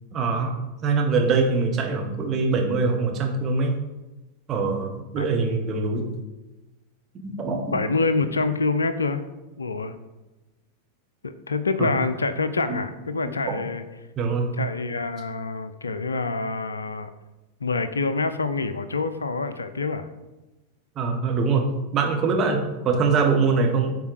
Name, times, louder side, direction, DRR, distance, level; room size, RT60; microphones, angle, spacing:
voice 1, 0.1-0.5 0.8-3.8 4.5-6.1 7.2-7.8 11.8-11.9 12.7-12.8 13.5-13.6 14.2-14.5 20.9-23.9, right 4 dB, 30° right, 1 dB, 1.3 m, -23 dB
voice 2, 5.2-5.5 7.5-9.2 9.6-9.9 11.2-13.8 14.6-17.1 17.6-20.1 22.9-23.0, left 3 dB, 75° left, 12 dB, 0.5 m, -26 dB
8.0 x 4.2 x 4.8 m, 1.1 s
figure-of-eight pair, 90°, 0 cm